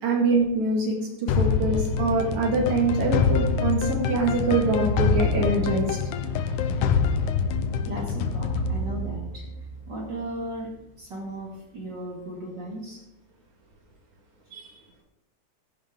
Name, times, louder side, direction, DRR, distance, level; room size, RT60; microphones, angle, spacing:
voice 1, 0.0-6.0 14.5-14.7, right 3 dB, 70° right, -2 dB, 3.5 m, -24 dB
sound 1, 1.3-10.1, left 5 dB, 85° left, 2.3 m, -25 dB
voice 2, 7.8-9.4 9.9-10.7 11.0-13.0, right 1 dB, 35° right, -2 dB, 2.9 m, -36 dB
16.0 x 10.0 x 3.8 m, 0.83 s
omnidirectional pair, 3.4 m